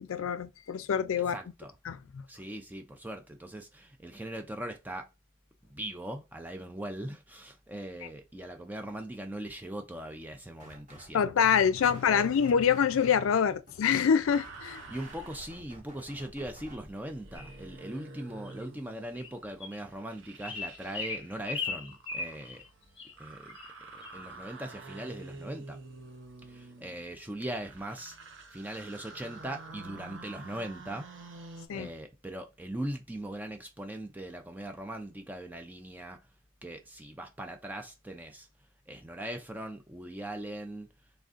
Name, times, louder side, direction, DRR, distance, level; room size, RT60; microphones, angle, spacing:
voice 1, 0.0-1.4 1.9-2.2 11.1-14.8 31.7-31.9, left 7 dB, 80° left, 0.4 m, -26 dB
voice 2, 1.3-1.7 2.3-5.1 5.6-11.5 12.1-12.3 14.9-22.6 23.2-23.6 23.9-25.8 26.5-31.1 31.7-36.2 36.6-38.5 38.9-40.9, right 1 dB, 10° right, 0.4 m, -40 dB
sound 1, 10.6-11.1 11.4-16.7, equal, 35° right, 1.4 m, -52 dB
sound 2, 14.3-31.7, right 3 dB, 65° right, 0.7 m, -49 dB
sound 3, 17.3-17.6 18.4-18.5 19.1-19.3 19.6-19.8 20.4-22.6 23.0-23.1 23.5-23.7 24.0-24.2, left 4 dB, 25° left, 1.0 m, -38 dB
3.8 x 3.4 x 2.5 m
head